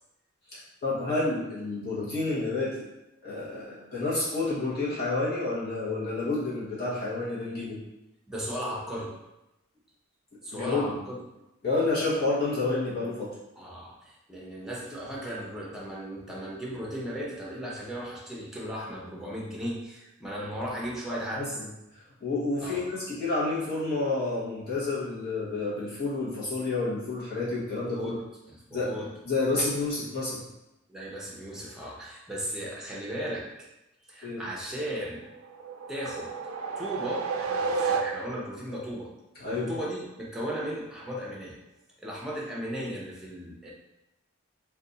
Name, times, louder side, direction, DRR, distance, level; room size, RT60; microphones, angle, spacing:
voice 1, 0.5-2.8 3.2-7.8 10.5-11.0 11.6-13.3 21.1-21.7 22.2-28.2 28.7-30.4 34.2-34.4 39.4-39.7, left 3 dB, 50° left, -9 dB, 0.9 m, -29 dB
voice 2, 8.3-9.1 10.4-11.2 13.6-21.6 22.6-22.8 27.9-28.2 28.5-29.1 29.5-29.7 30.9-33.7 34.1-35.2 35.9-36.3 36.8-39.1 39.4-41.6 42.0-43.7, equal, 5° right, -4 dB, 0.6 m, -36 dB
sound 1, 35.3-38.6, right 5 dB, 85° right, 0.3 m, -31 dB
2.5 x 2.3 x 3.9 m, 0.93 s
head